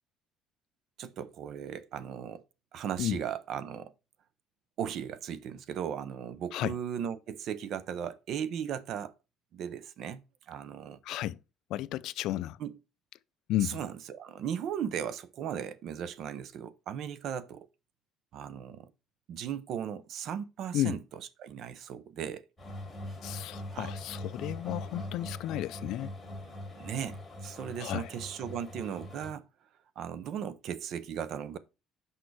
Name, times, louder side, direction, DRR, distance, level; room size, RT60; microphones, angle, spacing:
voice 1, 1.0-2.4 2.7-3.9 4.8-9.1 9.5-11.0 12.6-12.8 13.6-17.7 18.3-18.9 19.3-21.0 21.4-22.4 23.7-23.9 26.8-29.5 30.0-31.6, right 8 dB, 50° right, 0.7 m, -37 dB
voice 2, 11.0-11.4 11.7-12.6 13.5-13.8 20.7-21.0 23.2-26.1 27.8-28.1, left 14 dB, 60° left, 0.4 m, -33 dB
sound 1, 22.6-29.3, left 1 dB, 10° left, 2.6 m, -42 dB
6.3 x 5.5 x 4.7 m
cardioid pair, 175°, 0 cm